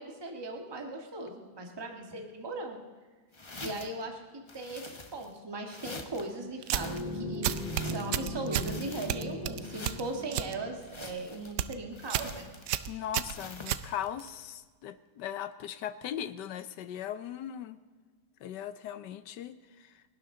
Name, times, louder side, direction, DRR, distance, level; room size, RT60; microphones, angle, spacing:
voice 1, 0.0-2.8 3.6-4.2 4.5-4.8 5.1-6.9 7.1-7.5 7.8-12.5, right 2 dB, 15° right, 2 dB, 1.5 m, -38 dB
sound 1, 3.3-4.0 4.5-5.4 5.7-6.3 6.6-8.2 8.5-9.3 9.6-10.3 10.8-11.6 11.9-12.9 13.3-13.9, left 3 dB, 30° left, 0.5 m, -46 dB
sound 2, 6.6-7.0 7.4-8.7 9.1-10.5 10.9-11.2 11.5-11.8 12.1-12.3 12.7-14.3, right 12 dB, 70° right, 1.1 m, -32 dB
sound 3, 6.7-11.4, left 1 dB, 5° left, 4.8 m, -39 dB
voice 2, 12.9-17.8 18.4-20.0, left 10 dB, 70° left, 13 dB, 1.2 m, -39 dB
30.0 x 12.0 x 3.8 m, 1.4 s
omnidirectional pair, 2.1 m